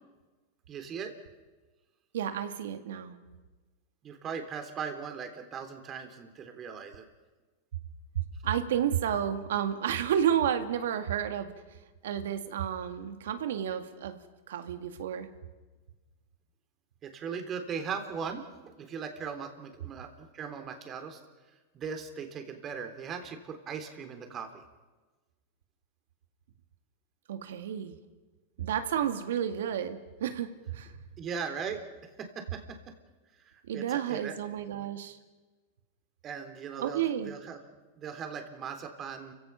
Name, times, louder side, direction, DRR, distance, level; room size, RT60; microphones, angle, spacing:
voice 1, 0.7-1.1 4.0-7.0 17.0-18.4 18.8-21.2 21.7-24.6 31.2-32.8 33.4-34.3 36.2-37.6 38.0-39.3, right 6 dB, 30° right, 5 dB, 3.5 m, -39 dB
voice 2, 2.1-3.2 8.4-11.5 12.0-14.2 14.5-15.3 27.3-28.0 28.6-30.9 33.7-35.2 36.8-37.3, right 9 dB, 80° right, 8 dB, 2.1 m, -31 dB
30.0 x 16.5 x 5.8 m, 1.2 s
hypercardioid pair, 125°, 0 cm